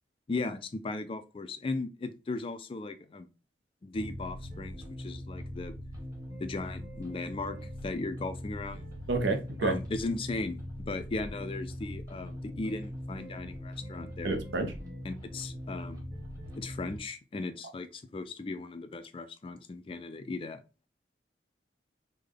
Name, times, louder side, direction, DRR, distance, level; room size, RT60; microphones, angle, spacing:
voice 1, 0.3-3.3 3.8-5.8 6.4-7.6 7.8-8.8 9.6-14.4 15.0-16.0 16.6-20.6, left 3 dB, 30° left, 0.3 m, -37 dB
sound 1, 3.9-17.0, equal, 20° right, 1.1 m, -41 dB
voice 2, 9.1-9.8 14.2-14.7, right 3 dB, 75° right, 0.6 m, -29 dB
3.3 x 2.2 x 3.6 m
head